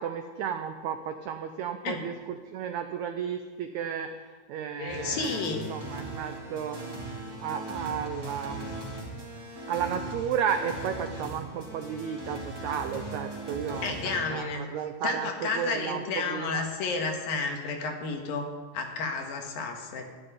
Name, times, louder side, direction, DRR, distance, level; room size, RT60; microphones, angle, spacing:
voice 1, 0.0-6.8 7.4-8.7 9.7-16.6, right 8 dB, 85° right, 7 dB, 1.6 m, -33 dB
voice 2, 4.8-5.7 13.8-14.7 15.0-18.5 18.7-20.0, left 4 dB, 75° left, 3 dB, 3.3 m, -31 dB
sound 1, 4.9-14.2, right 2 dB, 5° right, 2.3 m, -39 dB
13.5 x 7.6 x 9.7 m, 1.4 s
omnidirectional pair, 4.2 m